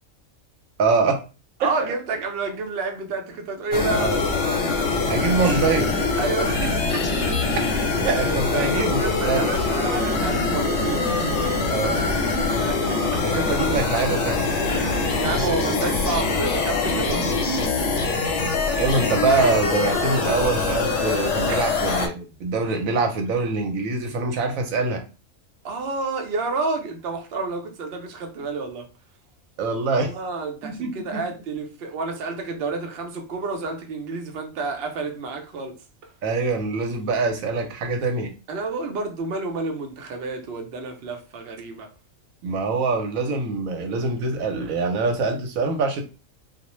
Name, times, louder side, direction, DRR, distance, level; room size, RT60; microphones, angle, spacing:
voice 1, 0.8-1.2 1.6-1.9 3.9-4.2 5.1-5.9 8.0-9.5 11.7-12.1 13.2-14.5 18.8-25.0 29.6-30.1 30.6-31.2 36.2-38.3 42.4-46.0, right 3 dB, 80° right, 1.0 m, -24 dB
voice 2, 1.6-4.1 6.1-7.1 8.1-12.1 12.6-13.2 14.7-17.5 21.5-21.7 25.6-28.9 29.9-35.7 38.5-41.9, right 3 dB, 60° right, 0.7 m, -30 dB
sound 1, 3.7-22.1, left 3 dB, 65° left, 0.9 m, -23 dB
2.4 x 2.0 x 2.9 m
omnidirectional pair, 1.4 m